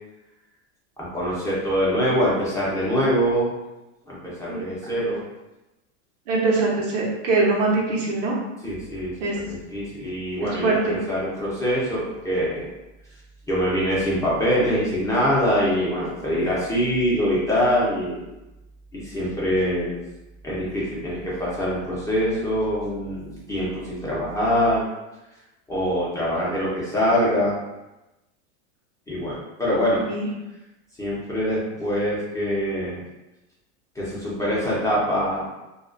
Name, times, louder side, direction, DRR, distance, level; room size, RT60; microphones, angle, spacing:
voice 1, 1.0-3.5 4.1-5.2 8.6-9.1 9.4-12.7 13.5-18.2 19.0-20.0 20.4-24.9 25.7-27.5 29.1-30.0 31.0-33.0 34.0-35.5, equal, 10° left, -7 dB, 0.6 m, -24 dB
voice 2, 4.5-5.0 6.3-8.3 9.2-9.4 10.6-11.0 30.0-30.3, right 3 dB, 80° right, -3 dB, 0.9 m, -23 dB
2.4 x 2.3 x 2.4 m, 1.0 s
supercardioid pair, 125°, 36 cm